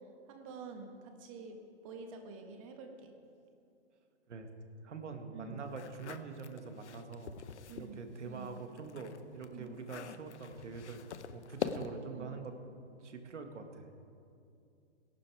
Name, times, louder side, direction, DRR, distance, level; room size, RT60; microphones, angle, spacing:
voice 1, 0.3-1.6 1.8-3.1 5.3-5.6 7.7-8.0 8.2-8.5 9.5-9.7 12.1-12.3, right 4 dB, 30° right, 4 dB, 1.5 m, -48 dB
voice 2, 4.8-7.4 7.7-12.5 13.0-13.9, right 4 dB, 85° right, 6 dB, 1.9 m, -45 dB
sound 1, 5.7-7.9 8.3-12.1, left 7 dB, 75° left, 0.9 m, -44 dB
17.5 x 11.5 x 4.9 m, 2.5 s
hypercardioid pair, 160°, 35 cm